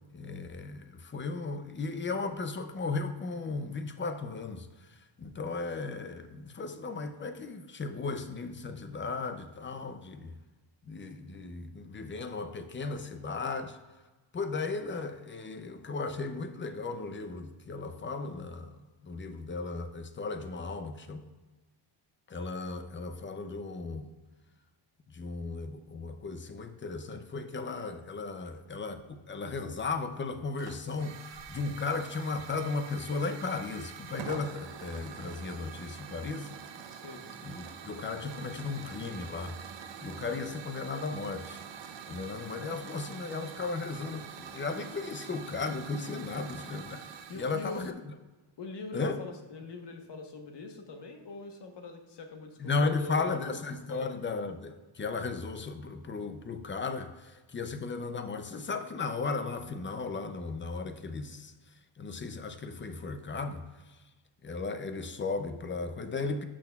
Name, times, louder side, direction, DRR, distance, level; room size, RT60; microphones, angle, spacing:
voice 1, 0.1-10.3 10.8-13.8 14.3-21.2 22.3-24.1 25.1-36.5 37.4-41.6 42.1-47.0 47.3-48.1 48.9-49.2 52.6-61.6 62.0-64.0 64.4-66.4, left 4 dB, 25° left, 8 dB, 0.4 m, -36 dB
Hiss / Fire, 30.6-47.9, right 7 dB, 60° right, 0.7 m, -45 dB
voice 2, 36.9-37.2 46.2-46.4 47.3-47.9 48.6-53.5 53.9-54.1, left 3 dB, 55° left, 4 dB, 1.1 m, -43 dB
12.0 x 6.3 x 2.3 m, 1.2 s
wide cardioid pair, 160°, 49 cm